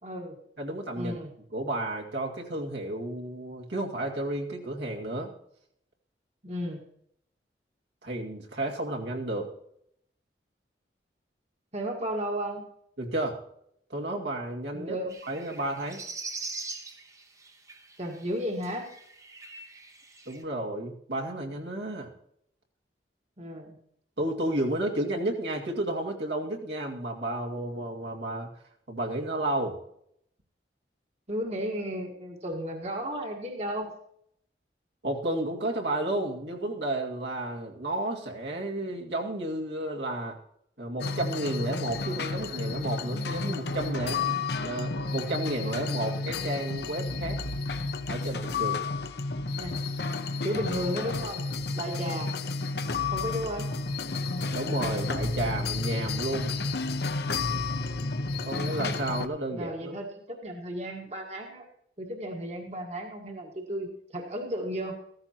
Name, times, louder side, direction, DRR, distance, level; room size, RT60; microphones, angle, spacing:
voice 1, 0.0-0.4 1.0-1.3 6.4-6.8 11.7-12.6 14.7-15.2 18.0-18.9 23.4-23.8 31.3-33.9 49.6-49.8 50.4-51.4 51.7-52.3 53.1-53.7 59.5-61.7 62.0-65.0, equal, 35° right, 1 dB, 1.6 m, -34 dB
voice 2, 0.6-1.2 1.5-5.3 8.0-9.5 13.0-13.4 13.9-15.0 15.2-16.0 20.3-22.1 24.2-28.5 28.9-29.8 35.0-40.4 40.8-47.4 48.1-48.8 54.5-56.6 58.4-60.0, right 1 dB, 75° right, -1 dB, 2.2 m, -32 dB
sound 1, 15.1-18.3 18.6-20.4, right 3 dB, 20° right, 0.9 m, -42 dB
sound 2, 41.0-59.3, left 3 dB, 65° left, 0.8 m, -31 dB
15.0 x 14.0 x 3.0 m, 0.71 s
head